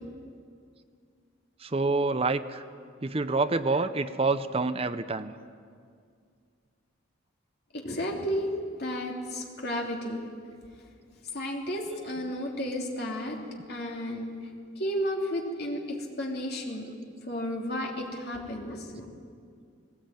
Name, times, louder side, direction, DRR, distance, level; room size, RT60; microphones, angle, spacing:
voice 1, 1.6-2.6 3.0-5.3, right 3 dB, 30° right, 11 dB, 0.6 m, -27 dB
voice 2, 7.7-8.5 8.8-10.2 11.3-13.4 13.7-14.3 14.8-16.9 17.3-19.0, equal, 50° left, -1 dB, 3.1 m, -32 dB
19.0 x 18.5 x 9.0 m, 2.2 s
head